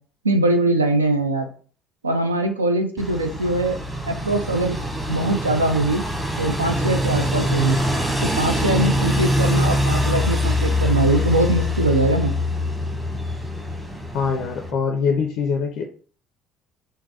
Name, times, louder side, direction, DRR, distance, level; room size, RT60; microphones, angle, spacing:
voice 1, 0.2-1.5 2.0-4.8 5.1-6.0 6.4-7.8 8.4-12.3, right 2 dB, 85° right, 6 dB, 0.4 m, -22 dB
sound 1, 3.0-14.7, left 1 dB, 10° right, 1.1 m, -24 dB
voice 2, 14.1-15.8, left 5 dB, 55° left, 4 dB, 0.4 m, -23 dB
3.8 x 2.1 x 2.7 m, 0.43 s
figure-of-eight pair, 55°, 0 cm